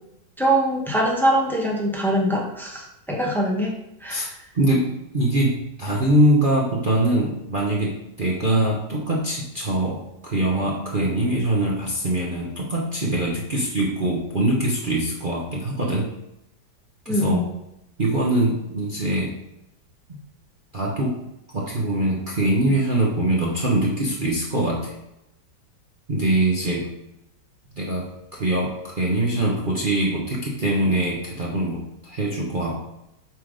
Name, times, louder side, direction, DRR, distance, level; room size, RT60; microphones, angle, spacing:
voice 1, 0.4-4.3 17.1-17.5, right 1 dB, ahead, -2 dB, 1.0 m, -23 dB
voice 2, 4.5-16.1 17.1-17.4 18.0-19.3 20.7-21.2 21.5-24.9 26.1-26.9 27.8-32.8, right 1 dB, 35° right, -3 dB, 0.8 m, -23 dB
7.7 x 3.8 x 5.0 m, 0.84 s
omnidirectional pair, 2.1 m